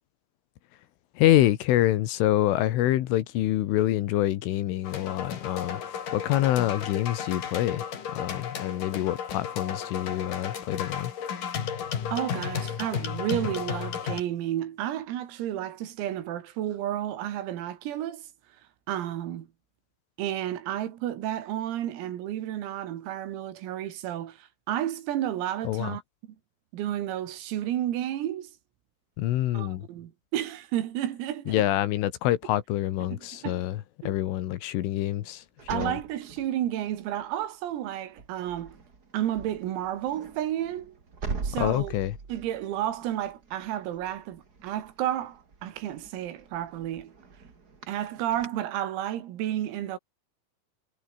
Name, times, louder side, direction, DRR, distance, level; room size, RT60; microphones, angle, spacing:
voice 1, 1.2-7.9 8.1-11.1 25.7-26.0 29.2-29.9 31.5-35.4 35.7-36.0 41.6-42.2, left 14 dB, 75° left, 3.8 m, -26 dB
sound 1, 4.8-14.2, left 8 dB, 45° left, 3.8 m, -34 dB
voice 2, 12.1-18.3 18.9-19.5 20.2-26.0 26.7-28.5 29.5-31.6 33.1-33.6 34.0-34.1 35.7-38.8 39.1-41.0 41.4-41.9 42.3-47.1 47.9-50.0, right 12 dB, 85° right, 5.0 m, -31 dB
sound 2, 35.6-37.1 37.6-37.9 38.2-48.5, right 4 dB, 35° right, 1.7 m, -42 dB
omnidirectional pair, 6.0 m